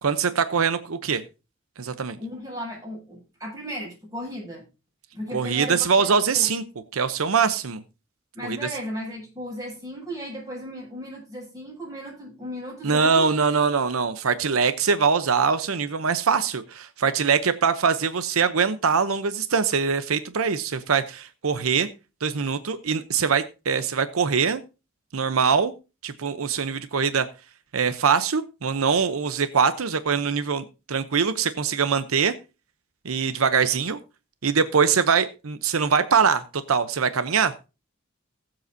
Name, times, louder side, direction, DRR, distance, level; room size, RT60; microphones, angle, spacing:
voice 1, 0.0-1.2 1.8-2.2 5.3-6.6 6.9-7.8 8.4-8.6 12.8-21.9 22.2-24.6 25.1-25.7 26.0-27.3 27.7-32.3 33.0-34.0 34.4-37.5, right 6 dB, 85° right, 11 dB, 0.8 m, -23 dB
voice 2, 2.2-4.6 5.1-6.5 8.3-13.2, equal, 15° right, -3 dB, 6.9 m, -35 dB
19.5 x 7.8 x 2.7 m, 0.30 s
head